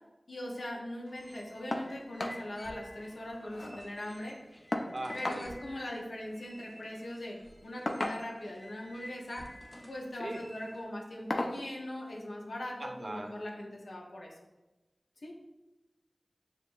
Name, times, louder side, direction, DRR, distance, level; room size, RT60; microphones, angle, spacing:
voice 1, 0.3-4.4 5.1-9.5 9.9-14.3 15.2-15.3, left 1 dB, 90° left, -1 dB, 0.7 m, -40 dB
sound 1, 1.1-10.8, equal, 30° left, 1.2 m, -52 dB
sound 2, 1.7-1.9 2.2-2.4 2.8-2.9 3.2-3.8 4.7-5.5 6.7-6.9 7.9-8.5 9.6-9.9 10.3-10.5 11.3-11.6 12.9-13.0 13.5-13.6, left 1 dB, 60° left, 0.4 m, -35 dB
voice 2, 3.4-3.8 4.9-5.5 10.2-10.4 12.8-13.4, right 1 dB, 50° right, 5 dB, 0.5 m, -41 dB
6.5 x 2.5 x 2.5 m, 1.1 s
wide cardioid pair, 45°, 0 cm